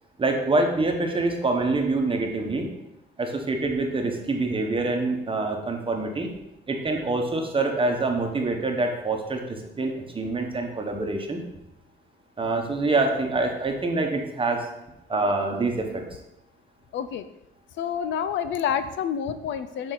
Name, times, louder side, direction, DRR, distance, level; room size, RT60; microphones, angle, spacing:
voice 1, 0.2-2.7 3.2-6.3 6.7-11.4 12.4-14.7 15.1-16.0, right 2 dB, 25° right, 3 dB, 1.1 m, -25 dB
voice 2, 16.9-17.3 17.8-19.9, left 8 dB, 70° left, 12 dB, 0.4 m, -28 dB
6.2 x 4.3 x 3.9 m, 0.89 s
cardioid pair, 90°, 20 cm